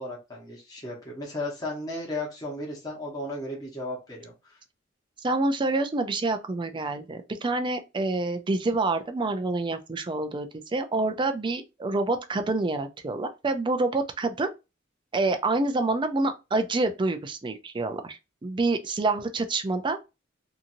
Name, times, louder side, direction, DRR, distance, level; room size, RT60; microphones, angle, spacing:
voice 1, 0.0-4.6, left 1 dB, 20° left, 0.9 m, -35 dB
voice 2, 5.2-10.5 10.7-14.5 15.1-20.0, right 2 dB, 25° right, 0.4 m, -27 dB
2.8 x 2.6 x 2.5 m
head